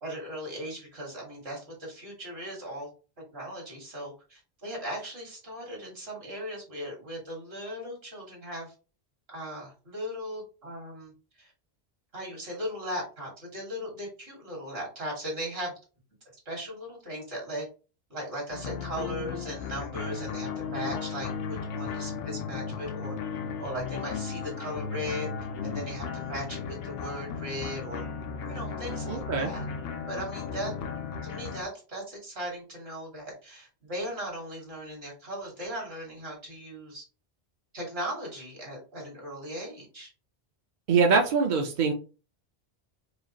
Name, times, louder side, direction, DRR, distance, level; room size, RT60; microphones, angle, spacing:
voice 1, 0.0-2.9 3.3-8.7 9.3-11.5 12.1-15.7 16.5-17.7 18.1-23.2 23.6-25.3 25.6-28.0 28.4-29.6 30.1-30.7 31.2-37.0 37.7-40.1, equal, 70° right, -1 dB, 2.0 m, -38 dB
sound 1, 18.5-31.6, left 6 dB, 70° left, 0.8 m, -35 dB
voice 2, 29.1-29.5 40.9-41.9, right 5 dB, 50° right, 2 dB, 0.7 m, -23 dB
4.9 x 2.4 x 2.9 m, 0.34 s
omnidirectional pair, 1.1 m